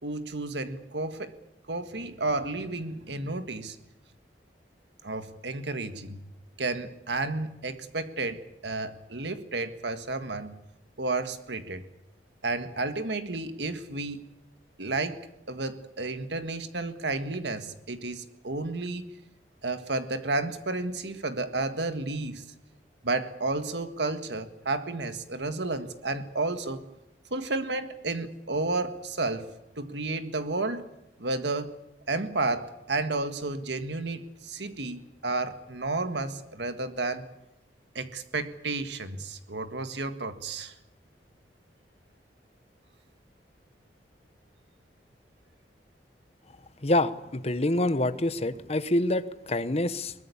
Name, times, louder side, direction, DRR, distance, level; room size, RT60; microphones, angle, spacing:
voice 1, 0.0-1.3 1.7-3.7 5.0-6.3 6.6-10.5 11.0-11.8 12.4-14.2 14.8-15.2 15.5-19.1 19.6-22.4 23.0-26.8 27.3-29.5 29.8-30.9 31.2-31.7 32.1-37.3 37.9-40.7, right 2 dB, 80° right, 9 dB, 1.8 m, -32 dB
voice 2, 46.8-50.1, left 1 dB, 35° left, 13 dB, 1.0 m, -26 dB
22.0 x 19.5 x 8.6 m, 0.88 s
head